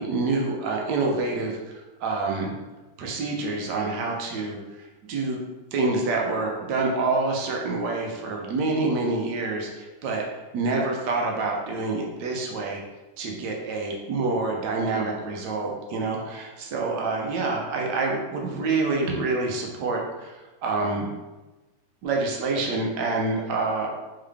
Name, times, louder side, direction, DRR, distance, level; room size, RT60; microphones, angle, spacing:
voice 1, 0.0-2.5 3.0-5.4 5.7-10.2 10.5-12.8 13.2-20.4 20.6-21.1 22.0-23.9, right 3 dB, 80° right, 0 dB, 1.4 m, -27 dB
3.8 x 3.8 x 3.4 m, 1.2 s
omnidirectional pair, 1.8 m